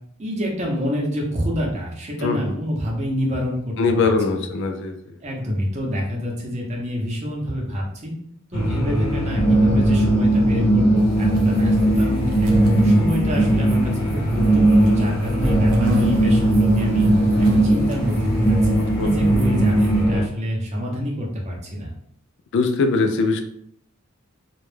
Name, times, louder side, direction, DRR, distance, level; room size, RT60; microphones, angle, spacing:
voice 1, 0.2-3.7 4.0-4.1 4.4-4.5 5.2-8.1 8.5-12.5 12.8-17.1 17.4-21.9, equal, 30° right, -1 dB, 0.6 m, -27 dB
voice 2, 2.2-2.6 3.8-5.2 18.8-19.1 22.5-23.4, left 4 dB, 55° left, 6 dB, 0.3 m, -21 dB
sound 1, 8.5-20.2, right 1 dB, 80° left, 0.9 m, -18 dB
sound 2, 11.0-20.0, left 2 dB, 85° right, 0.6 m, -31 dB
2.2 x 2.0 x 3.1 m, 0.69 s
head